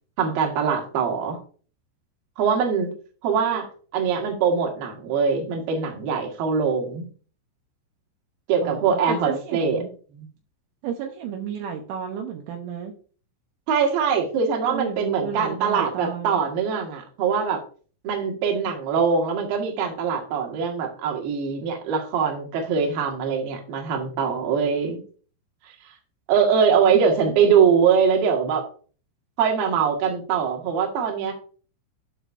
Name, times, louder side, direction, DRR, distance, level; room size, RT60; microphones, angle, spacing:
voice 1, 0.2-1.4 2.4-2.9 3.2-3.7 3.9-7.1 8.5-9.8 10.1-10.2 13.7-17.6 18.0-25.0 26.3-28.7 29.4-31.3, right 6 dB, 55° right, 1 dB, 3.0 m, -22 dB
voice 2, 8.6-9.9 10.8-12.9 14.7-16.4, right 8 dB, 75° right, 2 dB, 3.2 m, -32 dB
12.0 x 6.1 x 2.6 m, 0.40 s
omnidirectional pair, 5.9 m